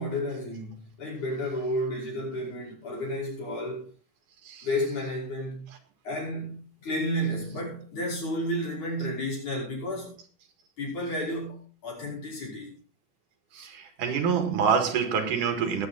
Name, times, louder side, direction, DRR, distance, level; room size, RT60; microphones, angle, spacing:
voice 1, 0.0-3.9 4.6-5.7 6.0-10.2 10.8-12.8, equal, 65° left, 6.9 m, -32 dB
voice 2, 13.5-15.9, right 6 dB, 75° right, 3.2 m, -26 dB
19.5 x 8.1 x 3.8 m
omnidirectional pair, 3.7 m